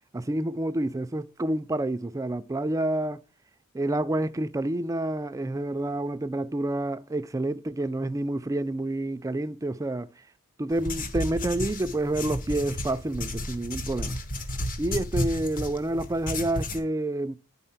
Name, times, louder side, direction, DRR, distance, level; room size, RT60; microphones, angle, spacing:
voice 1, 0.1-3.2 3.7-10.1 10.6-14.1 14.8-17.4, right 1 dB, 15° right, 0.3 m, -28 dB
sound 1, 10.7-16.8, left 1 dB, 40° left, 1.0 m, -33 dB
9.9 x 4.1 x 5.7 m
head